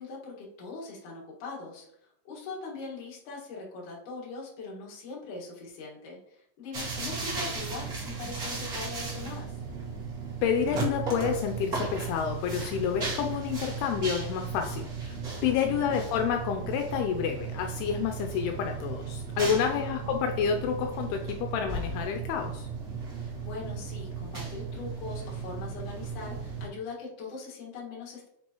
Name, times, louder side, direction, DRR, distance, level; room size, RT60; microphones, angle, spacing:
voice 1, 0.0-9.6 15.5-15.9 19.5-20.0 23.1-28.3, left 4 dB, 55° left, -4 dB, 3.0 m, -41 dB
sound 1, 6.7-26.7, right 4 dB, 40° right, 1.5 m, -35 dB
voice 2, 10.4-22.7, left 7 dB, 85° left, 4 dB, 2.6 m, -29 dB
8.4 x 5.4 x 3.0 m, 0.76 s
omnidirectional pair, 4.6 m